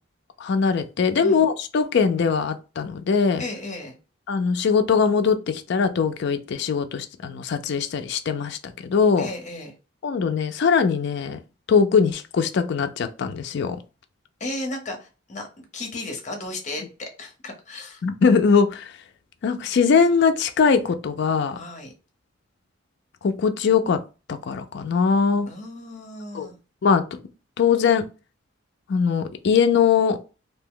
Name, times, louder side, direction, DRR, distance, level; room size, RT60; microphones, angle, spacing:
voice 1, 0.4-3.4 4.3-9.3 10.0-11.4 11.7-13.8 18.0-18.9 19.4-21.6 23.2-24.0 24.3-25.5 26.3-26.5 26.8-27.0 27.6-28.0 28.9-30.2, left 5 dB, 60° left, 0.4 m, -21 dB
voice 2, 3.4-4.0 9.2-9.7 14.4-18.0 21.6-21.9 25.5-26.6, left 2 dB, 40° left, 0.8 m, -34 dB
2.7 x 2.1 x 3.6 m
head